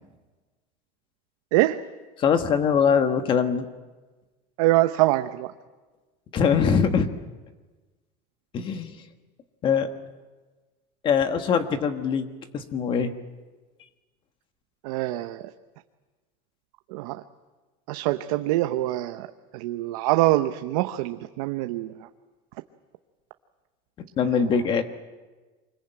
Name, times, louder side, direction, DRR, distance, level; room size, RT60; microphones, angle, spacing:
voice 1, 2.2-3.7 6.3-7.1 8.5-9.0 9.6-9.9 11.0-12.3 12.5-13.1 24.2-24.8, left 6 dB, 25° left, 8 dB, 1.3 m, -22 dB
voice 2, 4.6-5.5 14.8-15.4 16.9-17.2 17.9-19.3 19.5-22.1 24.2-24.4, right 17 dB, 80° right, 8 dB, 0.9 m, -24 dB
25.0 x 21.0 x 8.9 m, 1.3 s
cardioid pair, 180°, 18 cm